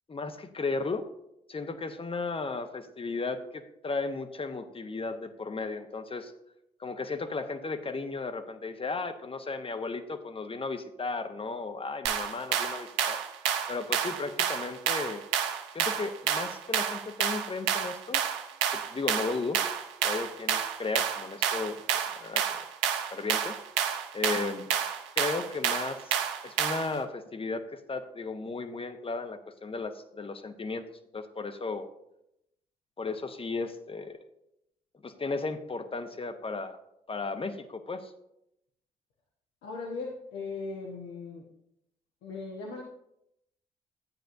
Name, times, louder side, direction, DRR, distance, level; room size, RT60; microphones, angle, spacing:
voice 1, 0.1-1.1 1.5-6.3 6.8-13.2 13.7-15.2 15.7-18.2 18.7-19.6 20.0-21.8 22.1-22.6 23.1-23.5 24.1-24.7 25.2-30.9 31.1-31.9 33.0-34.2 35.0-36.8 37.1-38.1, left 3 dB, 30° left, 9 dB, 1.0 m, -35 dB
sound 1, 12.1-27.0, right 9 dB, 75° right, 0.7 m, -30 dB
voice 2, 39.6-41.5 42.2-42.8, left 4 dB, 70° left, -1 dB, 1.2 m, -38 dB
12.0 x 8.9 x 2.6 m, 0.81 s
hypercardioid pair, 45°, 19 cm